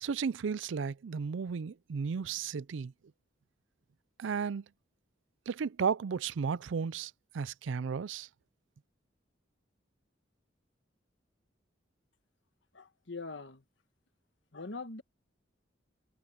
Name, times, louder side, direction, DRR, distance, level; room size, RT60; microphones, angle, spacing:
voice 1, 0.0-2.9 4.2-4.6 5.5-8.3, right 6 dB, 80° right, 0.4 m, -34 dB
voice 2, 12.7-13.6 14.5-15.0, left 3 dB, 70° left, 1.5 m, -42 dB
head